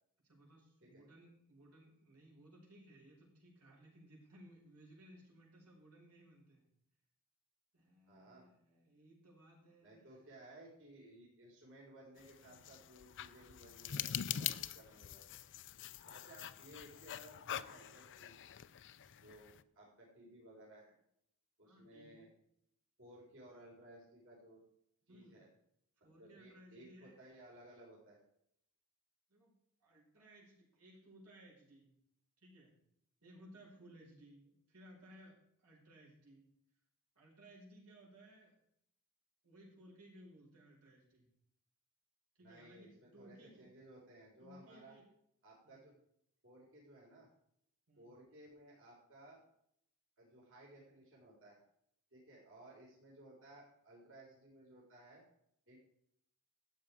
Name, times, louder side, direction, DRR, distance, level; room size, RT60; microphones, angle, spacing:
voice 1, 0.2-6.7 7.7-10.2 21.6-22.2 25.1-25.4 26.0-27.1 29.3-29.5 29.8-31.9 32.4-32.8 33.2-36.4 37.2-38.6 39.4-41.3 42.4-43.7 44.4-45.0 45.6-45.9 47.9-48.1, right 1 dB, 85° right, -3 dB, 5.2 m, -60 dB
voice 2, 8.1-8.5 9.8-15.4 16.1-18.4 19.2-20.9 21.6-22.3 23.0-24.6 25.1-25.5 26.2-28.2 42.4-45.0 45.4-45.9 46.4-47.3 48.0-49.4 50.2-51.6 52.1-55.2 55.7-55.8, right 1 dB, 60° right, -4 dB, 4.1 m, -58 dB
sound 1, 12.2-19.6, left 10 dB, 55° left, 0.5 m, -44 dB
13.0 x 8.4 x 4.8 m, 0.72 s
head